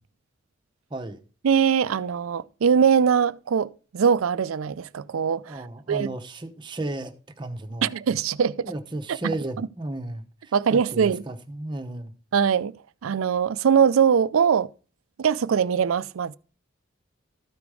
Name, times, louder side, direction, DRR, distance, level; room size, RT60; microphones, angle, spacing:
voice 1, 0.9-1.2 5.5-7.9 8.6-12.1, right 2 dB, 20° right, 0.8 m, -34 dB
voice 2, 1.4-5.6 5.9-6.1 7.8-8.7 9.1-9.2 10.5-11.2 12.3-12.7 13.0-14.7 15.2-16.4, right 7 dB, 85° right, 0.4 m, -22 dB
13.0 x 5.1 x 4.8 m
head